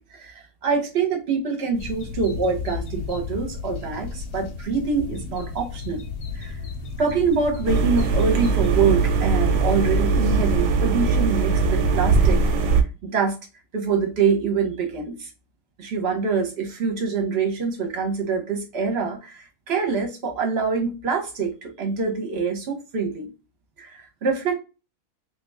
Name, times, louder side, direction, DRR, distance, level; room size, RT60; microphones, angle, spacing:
voice 1, 0.6-6.0 6.3-6.6 7.0-12.4 13.0-13.4 13.7-15.3 15.8-23.3 23.8-24.6, right 5 dB, 45° right, 2 dB, 1.1 m, -25 dB
sound 1, 1.8-10.6, left 3 dB, 65° left, 1.2 m, -33 dB
sound 2, 7.7-12.8, right 4 dB, 90° right, 1.2 m, -20 dB
3.0 x 2.8 x 3.3 m, 0.31 s
omnidirectional pair, 1.6 m